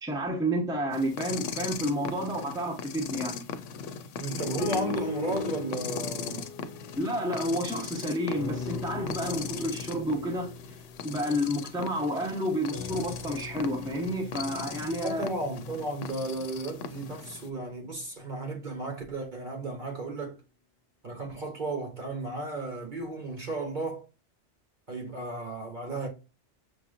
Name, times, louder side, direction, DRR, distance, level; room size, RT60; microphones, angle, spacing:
voice 1, 0.0-3.4 7.0-10.5 11.0-15.3, equal, 5° right, 0.8 m, -30 dB
sound 1, 0.9-17.5, left 7 dB, 85° left, 1.0 m, -39 dB
voice 2, 4.2-6.5 15.0-20.4 21.0-24.0 24.9-26.1, right 2 dB, 45° right, 1.1 m, -34 dB
sound 2, 4.6-7.9 8.3-12.1 12.7-16.9 17.6-17.7, left 3 dB, 60° left, 1.0 m, -40 dB
6.3 x 2.8 x 2.5 m
omnidirectional pair, 1.2 m